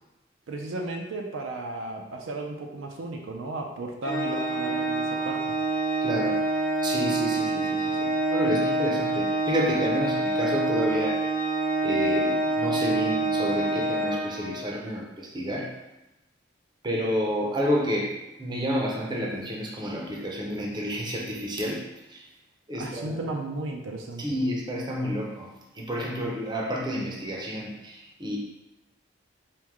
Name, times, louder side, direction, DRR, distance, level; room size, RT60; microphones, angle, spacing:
voice 1, 0.5-5.5 22.8-24.2, right 2 dB, 80° right, 2 dB, 0.5 m, -34 dB
Organ, 4.0-14.8, right 2 dB, 45° left, 0.6 m, -26 dB
voice 2, 6.0-6.4 6.8-11.2 11.8-15.7 16.8-21.8 22.1-22.2 22.7-23.2 24.2-25.5 25.7-28.4, equal, 25° right, -2 dB, 0.6 m, -30 dB
4.5 x 2.2 x 3.5 m, 0.96 s
head